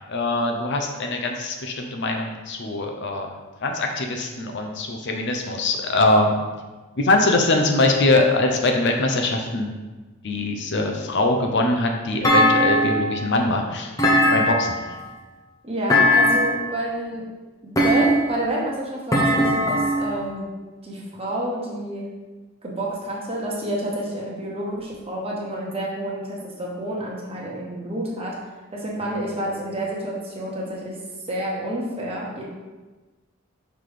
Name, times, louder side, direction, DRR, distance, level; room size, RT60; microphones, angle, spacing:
voice 1, 0.1-3.3 3.6-6.3 7.0-9.7 10.2-13.9 14.3-14.7, left 2 dB, 55° left, 3 dB, 0.7 m, -22 dB
Thump thud, 12.2-13.2 14.0-14.9 15.9-16.7 17.8-18.5 19.1-20.1, left 1 dB, 15° left, 0.9 m, -19 dB
voice 2, 15.6-17.3 17.6-20.5 20.8-22.0 22.6-28.3 28.7-31.0 31.3-32.4, right 1 dB, 30° right, -4 dB, 1.3 m, -29 dB
5.9 x 3.5 x 4.9 m, 1.2 s
head